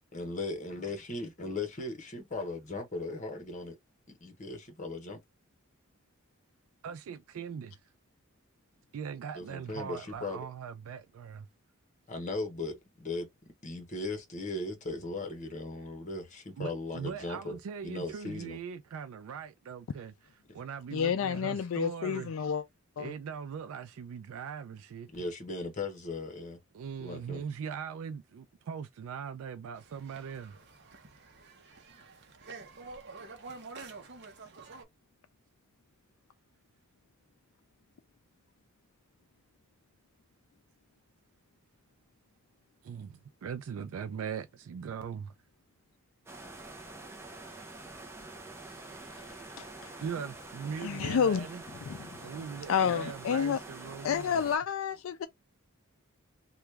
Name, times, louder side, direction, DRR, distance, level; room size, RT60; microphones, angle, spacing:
voice 1, 0.1-3.8 4.2-5.2 9.3-10.4 12.1-13.3 13.6-18.6 25.1-26.6 27.0-27.4, left 2 dB, 35° left, 1.0 m, -38 dB
voice 2, 6.8-7.8 8.9-11.5 16.6-20.1 20.5-22.3 23.0-25.1 26.7-30.6 42.8-45.3 50.0-51.6 52.2-54.4, right 7 dB, 70° right, 0.3 m, -40 dB
voice 3, 20.9-22.6 23.0-23.1 49.6-49.9 50.8-51.5 51.9-52.1 52.7-53.6 54.0-55.3, left 7 dB, 65° left, 0.3 m, -29 dB
sound 1, 29.8-34.8, right 4 dB, 50° right, 0.7 m, -48 dB
sound 2, 46.3-54.6, right 2 dB, 10° right, 0.5 m, -46 dB
3.0 x 2.3 x 3.3 m
head